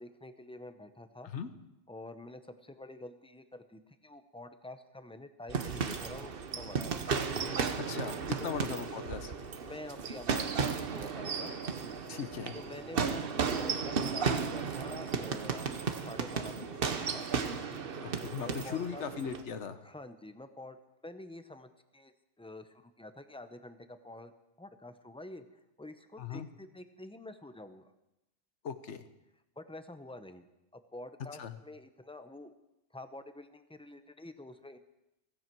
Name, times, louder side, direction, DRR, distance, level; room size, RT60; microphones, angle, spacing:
voice 1, 0.0-1.3 1.9-7.0 8.4-8.8 9.5-11.5 12.5-13.3 13.6-17.3 18.4-19.0 19.8-20.8 21.0-22.1 22.4-24.3 24.6-27.9 29.6-30.5 30.7-32.5 32.9-34.8, left 2 dB, 5° left, 9 dB, 0.6 m, -48 dB
sound 1, 5.5-19.4, right 5 dB, 50° right, 1.1 m, -34 dB
voice 2, 7.9-9.3 12.1-12.6 18.0-19.8 26.2-26.5 28.6-29.1 31.4-31.6, left 7 dB, 70° left, 11 dB, 1.2 m, -39 dB
16.0 x 15.5 x 4.6 m, 0.91 s
omnidirectional pair, 1.3 m